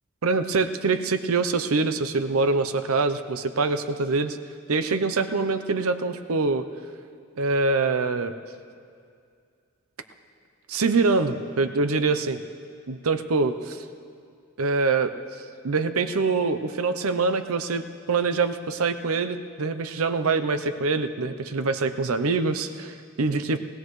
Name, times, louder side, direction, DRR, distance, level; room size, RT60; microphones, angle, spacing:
voice 1, 0.2-4.4 4.7-6.7 7.4-8.3 10.7-12.4 12.9-13.8 14.6-15.1 15.6-23.6, right 4 dB, 90° right, 10 dB, 0.7 m, -24 dB
21.0 x 16.5 x 3.2 m, 2.3 s
head